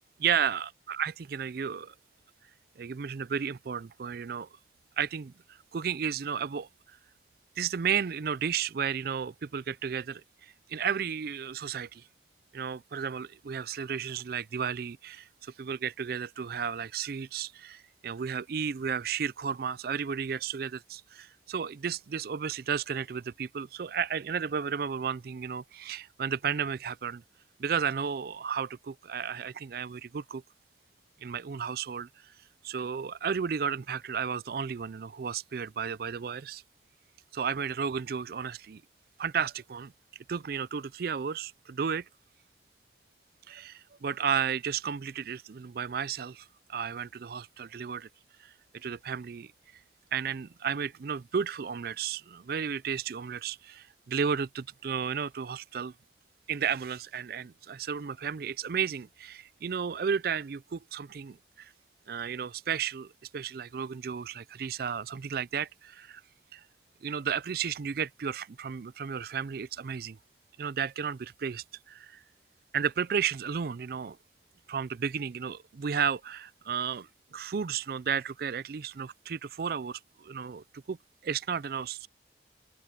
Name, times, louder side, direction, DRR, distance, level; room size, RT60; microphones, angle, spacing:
voice 1, 0.2-1.9 2.8-4.5 5.0-6.7 7.6-12.1 12.5-27.2 27.6-30.4 31.2-32.3 32.6-36.6 37.3-38.8 39.2-39.9 40.3-42.1 43.5-48.1 48.4-49.5 50.1-55.9 56.5-61.7 62.1-66.2 66.5-66.6 67.0-70.2 70.6-72.2 72.7-74.2 74.7-81.0 81.2-82.1, right 7 dB, 55° right, 0.4 m, -33 dB
head